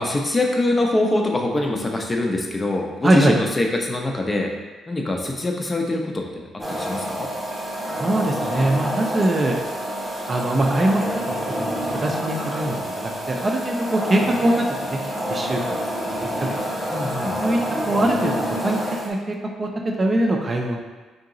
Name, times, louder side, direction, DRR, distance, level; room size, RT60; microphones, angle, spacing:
voice 1, 0.0-4.5 4.9-7.3 16.9-17.4, left 2 dB, 20° left, 1 dB, 0.5 m, -24 dB
voice 2, 3.0-3.4 7.9-9.6 10.3-15.0 15.3-16.1 16.4-16.6 17.4-17.6 17.8-18.8 19.0-19.7 20.0-20.8, right 1 dB, 30° right, 1 dB, 0.5 m, -22 dB
sound 1, 6.6-19.1, equal, ahead, 0.9 m, -28 dB
3.8 x 2.8 x 3.8 m, 1.3 s
cardioid pair, 110°, 0 cm